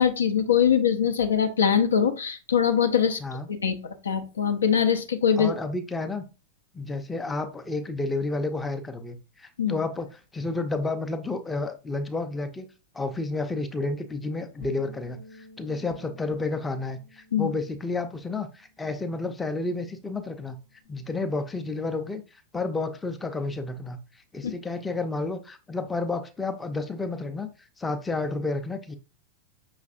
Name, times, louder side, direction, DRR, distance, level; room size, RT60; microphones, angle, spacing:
voice 1, 0.0-3.2 3.6-5.5 9.6-9.8 17.3-17.5 24.4-24.5, left 8 dB, 70° left, 8 dB, 0.4 m, -22 dB
voice 2, 5.4-6.2 6.7-12.7 12.9-20.6 20.9-22.2 22.5-24.0 24.3-27.5 27.8-29.0, left 3 dB, 10° left, 7 dB, 0.5 m, -31 dB
Bass guitar, 14.6-18.9 19.2-20.9, left 2 dB, 50° left, 0.8 m, -52 dB
5.8 x 3.1 x 2.5 m, 0.32 s
figure-of-eight pair, 90°, 0 cm